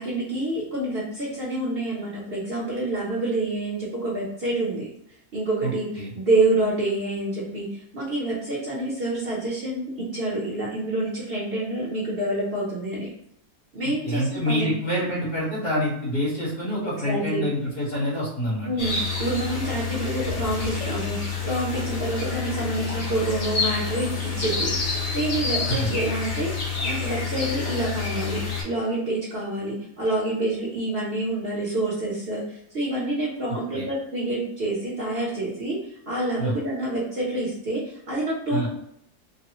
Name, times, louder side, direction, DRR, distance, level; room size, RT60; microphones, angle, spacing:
voice 1, 0.0-4.9 5.3-13.1 13.7-14.7 17.0-17.4 18.7-24.7 25.1-26.5 26.8-35.8 36.1-38.7, right 2 dB, 50° right, -6 dB, 0.9 m, -27 dB
voice 2, 5.6-6.1 13.8-18.7 25.7-26.0 33.7-33.9 36.4-36.5 38.5-38.7, equal, 70° left, -8 dB, 2.1 m, -27 dB
sound 1, 18.8-28.6, left 5 dB, 55° left, 1.3 m, -28 dB
3.9 x 2.1 x 2.9 m, 0.75 s
omnidirectional pair, 1.5 m